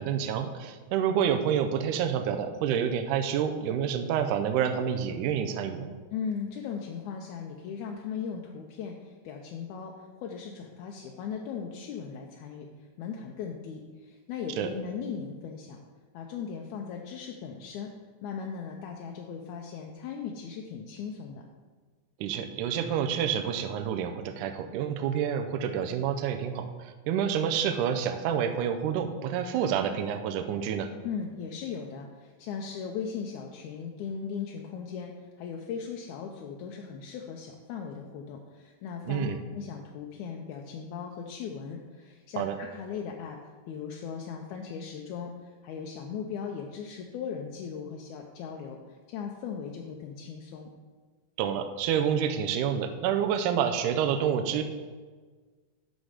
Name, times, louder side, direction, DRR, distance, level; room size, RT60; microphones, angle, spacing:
voice 1, 0.0-5.9 14.6-14.7 22.2-30.9 39.0-39.4 42.4-42.6 51.4-54.6, right 8 dB, 85° right, 6 dB, 2.1 m, -28 dB
voice 2, 6.1-15.8 16.1-17.9 18.2-21.4 31.0-50.7, left 6 dB, 80° left, 1 dB, 2.0 m, -38 dB
9.4 x 6.2 x 4.9 m, 1.4 s
omnidirectional pair, 3.6 m